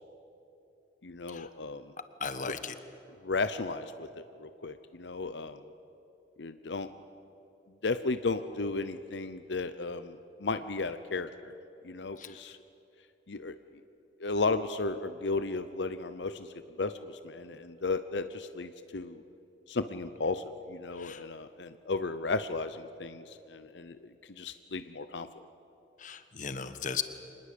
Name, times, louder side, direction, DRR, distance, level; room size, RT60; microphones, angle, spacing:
voice 1, 1.0-1.8 2.4-2.5 3.2-4.1 4.4-5.6 6.4-6.9 7.8-11.5 11.8-12.6 13.3-13.6 14.2-16.5 16.8-19.2 19.7-24.0 24.4-25.3, left 3 dB, 80° left, 11 dB, 0.8 m, -34 dB
voice 2, 2.2-2.7 12.2-12.3 21.0-21.2 26.0-27.0, left 6 dB, 45° left, 10 dB, 1.3 m, -36 dB
25.5 x 20.0 x 8.6 m, 2.9 s
head